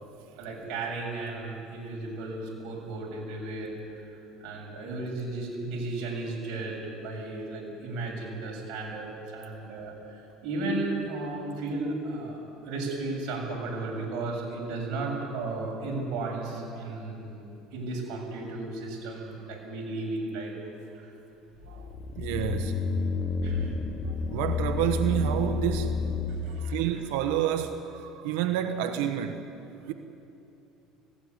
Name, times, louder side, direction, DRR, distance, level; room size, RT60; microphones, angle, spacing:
voice 1, 0.4-12.4 12.6-17.4 17.7-20.5 20.9-21.1 23.4-23.7 26.3-27.0, right 2 dB, 60° right, -1 dB, 7.1 m, -34 dB
sound 1, 21.6-26.7, left 4 dB, 35° left, 1.6 m, -30 dB
voice 2, 22.1-23.1 23.8-26.0 26.5-29.5 29.9-30.0, right 10 dB, 80° right, 8 dB, 1.1 m, -30 dB
18.5 x 17.0 x 9.6 m, 2.9 s
supercardioid pair, 110°, 0 cm